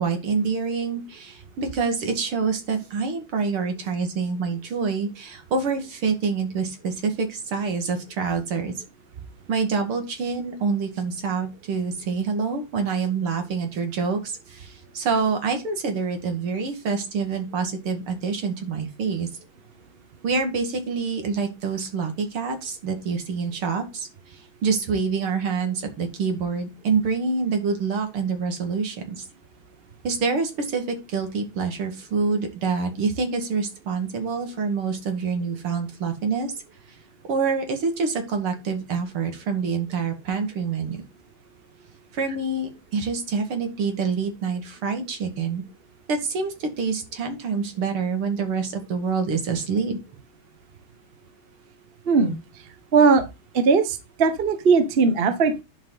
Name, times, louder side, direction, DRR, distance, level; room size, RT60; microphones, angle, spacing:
voice 1, 0.0-8.7 9.5-19.3 20.2-29.2 30.0-36.5 37.3-41.0 42.1-45.6 46.1-50.0, right 5 dB, 80° right, 5 dB, 2.8 m, -26 dB
voice 2, 52.9-53.2 53.5-55.6, right 4 dB, 35° right, 9 dB, 1.0 m, -19 dB
11.0 x 5.3 x 3.9 m, 0.26 s
omnidirectional pair, 2.4 m